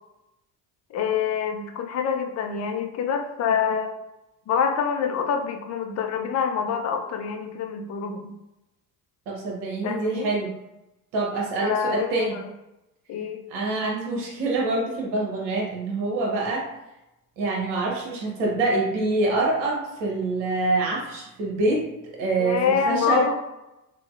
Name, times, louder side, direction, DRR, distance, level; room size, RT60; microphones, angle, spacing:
voice 1, 0.9-3.9 4.5-8.3 9.8-10.3 11.6-12.4 13.1-13.4 22.4-23.4, left 7 dB, 35° left, 4 dB, 0.5 m, -26 dB
voice 2, 9.3-10.5 11.1-12.3 13.5-16.7 17.4-21.8 22.2-23.2, right 2 dB, 55° right, -2 dB, 1.0 m, -25 dB
3.7 x 2.0 x 2.4 m, 0.94 s
figure-of-eight pair, 55°, 50 cm